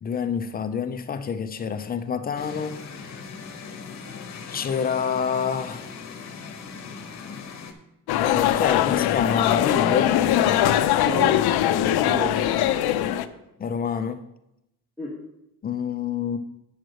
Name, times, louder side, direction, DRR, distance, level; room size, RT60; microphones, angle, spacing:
voice 1, 0.0-2.8 4.5-5.9 7.2-7.4 8.2-10.2 13.6-14.2 15.6-16.4, left 7 dB, 25° left, 10 dB, 0.4 m, -27 dB
sound 1, 2.4-7.7, left 5 dB, 45° left, 1.0 m, -39 dB
sound 2, 8.1-13.3, left 12 dB, 85° left, 0.6 m, -21 dB
voice 2, 10.9-11.4 12.0-13.4 15.0-15.1, right 1 dB, 5° right, -5 dB, 1.3 m, -33 dB
8.9 x 4.7 x 6.3 m, 0.86 s
cardioid pair, 170°, 37 cm